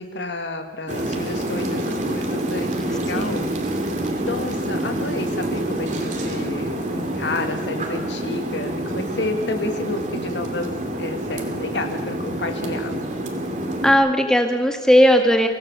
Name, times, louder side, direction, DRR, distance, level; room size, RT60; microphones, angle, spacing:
voice 1, 0.0-3.5 4.2-13.0, left 2 dB, 80° left, 6 dB, 1.8 m, -30 dB
sound 1, 0.9-13.9, right 1 dB, 40° right, 2.7 m, -27 dB
voice 2, 3.1-3.5 13.8-15.5, equal, 5° left, 4 dB, 1.9 m, -17 dB
24.0 x 17.0 x 6.8 m, 1.2 s
head